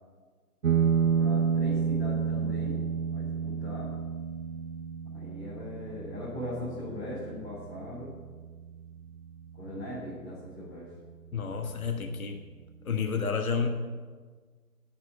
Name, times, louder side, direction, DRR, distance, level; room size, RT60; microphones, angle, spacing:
sound 1, 0.6-9.7, right 6 dB, 60° right, 0.7 m, -30 dB
voice 1, 1.2-2.8 3.1-3.9 5.1-8.1 9.6-10.9, left 1 dB, 10° left, -12 dB, 2.5 m, -39 dB
voice 2, 11.3-12.4 12.8-13.7, left 5 dB, 60° left, 4 dB, 1.4 m, -30 dB
11.5 x 6.1 x 9.0 m, 1.5 s
figure-of-eight pair, 160°, 47 cm